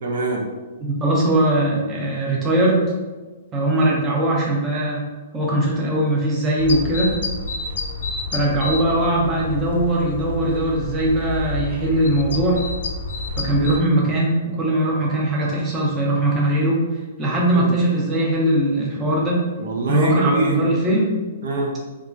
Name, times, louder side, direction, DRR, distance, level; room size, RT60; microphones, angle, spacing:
voice 1, 0.0-0.5 17.5-17.7 19.6-20.7 21.4-21.7, right 2 dB, 65° right, 0 dB, 0.5 m, -23 dB
voice 2, 0.8-2.9 3.5-5.0 5.3-7.1 8.3-12.6 13.4-16.8 17.2-19.5 19.9-21.2, right 1 dB, 15° right, -4 dB, 0.5 m, -20 dB
sound 1, 6.6-13.8, left 2 dB, 90° left, 0.3 m, -29 dB
2.9 x 2.3 x 2.5 m, 1.3 s
hypercardioid pair, 155°, 0 cm